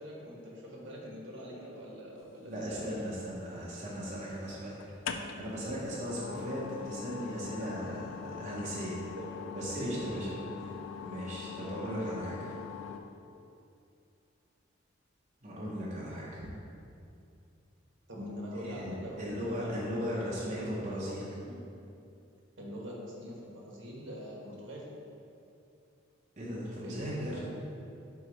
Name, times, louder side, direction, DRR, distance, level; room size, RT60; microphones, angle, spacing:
voice 1, 0.0-3.0 9.2-9.3 9.6-10.0 18.1-19.7 20.4-21.0 21.5-21.6 22.6-24.8 26.8-27.5, equal, 65° right, -3 dB, 1.2 m, -43 dB
voice 2, 2.4-4.8 5.3-9.0 9.5-12.5 15.4-16.5 18.5-21.3 26.4-27.3, equal, 35° right, -6 dB, 0.7 m, -37 dB
sound 1, 2.6-3.4 4.8-13.0, left 6 dB, 75° left, 0.4 m, -42 dB
4.8 x 4.1 x 5.0 m, 2.6 s
head